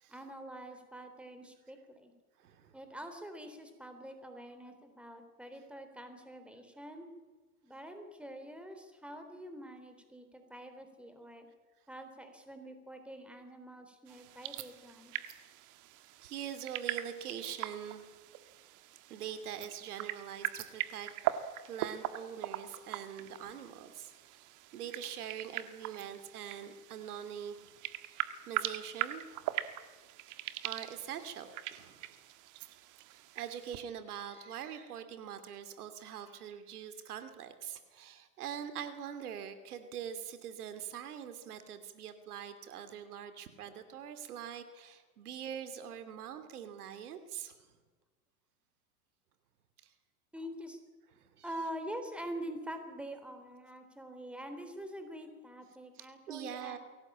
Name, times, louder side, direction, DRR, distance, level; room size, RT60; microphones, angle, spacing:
voice 1, 0.1-2.1 2.7-7.1 7.6-11.5 11.9-15.1 50.3-50.8 51.4-56.8, equal, ahead, 7 dB, 3.6 m, -45 dB
voice 2, 2.4-2.8 16.2-18.1 19.1-27.8 28.0-29.6 30.2-30.4 30.6-32.1 33.0-47.7 49.8-49.9 51.2-51.5 56.0-56.8, right 9 dB, 75° right, 9 dB, 2.8 m, -44 dB
sound 1, 14.1-33.8, right 14 dB, 40° right, 1.7 m, -41 dB
22.5 x 18.0 x 8.7 m, 1.3 s
hypercardioid pair, 115°, 45 cm